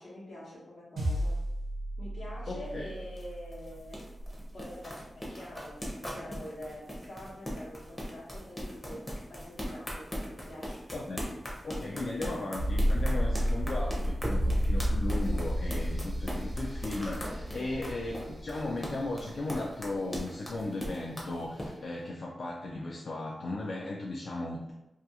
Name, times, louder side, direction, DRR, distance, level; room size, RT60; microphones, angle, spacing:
voice 1, 0.0-1.4 2.0-4.1 4.5-10.8 17.6-17.8, left 1 dB, 75° left, -5 dB, 0.9 m, -45 dB
sound 1, 1.0-5.5, right 1 dB, 85° right, 0.7 m, -37 dB
voice 2, 2.5-2.8 10.9-24.7, left 2 dB, 60° left, -2 dB, 0.3 m, -36 dB
sound 2, 2.6-21.7, equal, 20° left, 0.6 m, -40 dB
sound 3, 12.6-19.4 19.7-19.8, equal, 35° right, 0.4 m, -30 dB
2.4 x 2.3 x 2.7 m, 0.94 s
wide cardioid pair, 100°, 0 cm